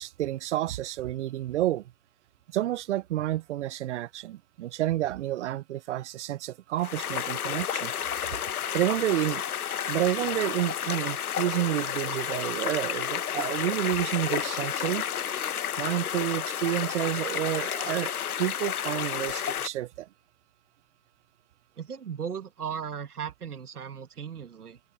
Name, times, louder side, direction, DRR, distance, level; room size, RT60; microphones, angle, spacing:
voice 1, 0.0-1.8 2.5-7.9 8.7-9.4 9.9-15.0 15.8-20.1, right 14 dB, 50° right, 0.8 m, -30 dB
sound 1, 6.8-19.7, left 9 dB, 80° left, 1.5 m, -31 dB
voice 2, 21.8-24.8, right 7 dB, 85° right, 2.2 m, -36 dB
open air
hypercardioid pair, 135°, 44 cm